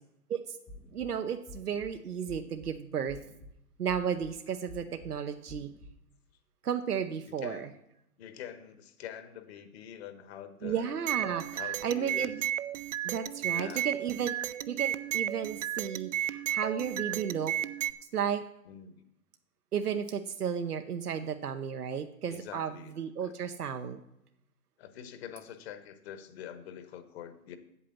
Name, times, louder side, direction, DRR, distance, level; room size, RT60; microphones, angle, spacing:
sound 1, 0.7-1.1 1.5-1.9 2.3-2.7 3.1-3.5 3.9-4.3 4.7-5.1 5.5-5.9, left 1 dB, 5° left, 0.5 m, -49 dB
voice 1, 0.9-3.2 3.8-5.7 6.6-7.7 10.6-12.4 13.0-14.3 14.7-17.6 18.1-18.4 19.7-24.0, right 7 dB, 80° right, 6 dB, 0.9 m, -33 dB
voice 2, 7.4-7.8 8.2-11.0 11.5-12.3 13.5-13.9 18.6-19.0 22.3-23.0 23.2-23.3 24.8-27.6, left 9 dB, 45° left, 10 dB, 1.3 m, -45 dB
sound 2, 11.1-17.9, right 11 dB, 55° right, 0.6 m, -33 dB
8.4 x 7.6 x 7.2 m, 0.82 s
hypercardioid pair, 130°, 45 cm